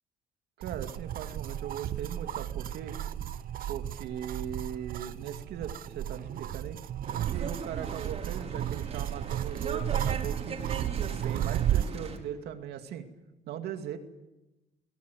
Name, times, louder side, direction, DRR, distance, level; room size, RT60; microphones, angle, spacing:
sound 1, 0.6-12.0, right 11 dB, 55° right, 0.9 m, -33 dB
voice 1, 0.6-3.0 3.7-6.8 7.1-10.6 11.0-13.1 13.5-14.0, right 9 dB, 75° right, 6 dB, 2.6 m, -39 dB
sound 2, 7.0-12.2, right 4 dB, 40° right, 4.8 m, -40 dB
23.5 x 17.5 x 9.5 m, 1.0 s
cardioid pair, 110°, 17 cm